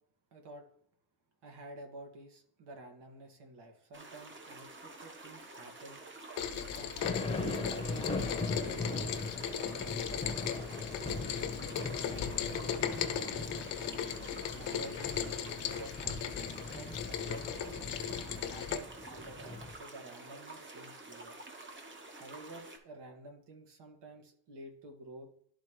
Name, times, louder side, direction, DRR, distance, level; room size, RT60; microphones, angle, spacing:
voice 1, 0.3-0.7 1.4-6.0 6.5-8.1 8.4-11.6 12.4-13.8 14.5-16.4 16.7-17.8 18.5-21.4 22.1-25.3, right 2 dB, 70° right, 3 dB, 1.9 m, -50 dB
sound 1, 3.9-22.8, right 2 dB, 25° right, 1.1 m, -50 dB
Rain, 6.4-18.8, left 9 dB, 80° left, 0.8 m, -37 dB
sound 2, 7.0-19.7, left 3 dB, 15° left, 0.8 m, -40 dB
12.0 x 4.1 x 3.2 m, 0.63 s
cardioid pair, 145°, 42 cm